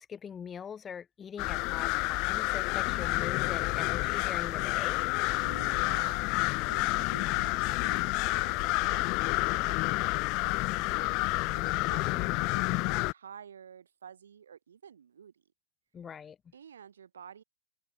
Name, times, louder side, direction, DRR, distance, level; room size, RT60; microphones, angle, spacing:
voice 1, 0.0-5.0 12.1-12.5 15.9-16.4, left 7 dB, 15° left, 1.4 m, -42 dB
sound 1, 1.4-13.1, left 26 dB, 35° left, 0.3 m, -29 dB
voice 2, 5.4-11.2 11.5-15.4 16.5-17.4, right 8 dB, 90° right, 6.4 m, -50 dB
hypercardioid pair, 155°, 0 cm